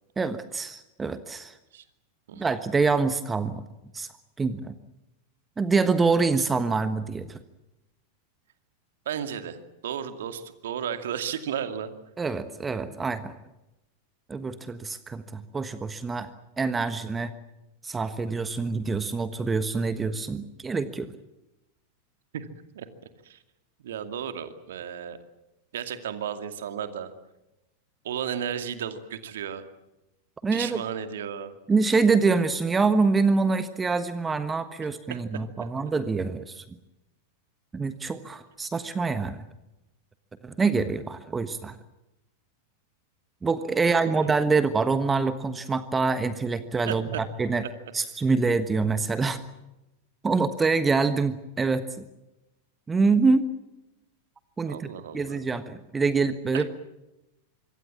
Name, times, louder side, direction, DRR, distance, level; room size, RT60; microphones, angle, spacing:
voice 1, 0.2-1.5 2.3-3.6 3.9-4.1 4.4-4.7 5.6-7.4 12.2-13.4 14.3-16.3 16.6-17.3 17.8-21.1 30.4-30.8 31.7-36.6 37.7-39.4 40.4-41.8 43.4-47.6 47.9-49.4 50.2-52.0 52.9-53.5 54.6-54.9 55.1-56.7, right 4 dB, 15° right, 12 dB, 1.3 m, -25 dB
voice 2, 9.1-11.9 22.3-22.5 22.7-22.9 23.2-23.4 23.8-25.2 25.7-27.1 28.0-29.7 30.5-31.5 35.1-35.4 43.8-44.3 46.9-47.2 54.6-55.4 56.5-56.7, right 8 dB, 60° right, 9 dB, 2.3 m, -34 dB
26.0 x 24.0 x 7.4 m, 0.95 s
figure-of-eight pair, 90°, 0 cm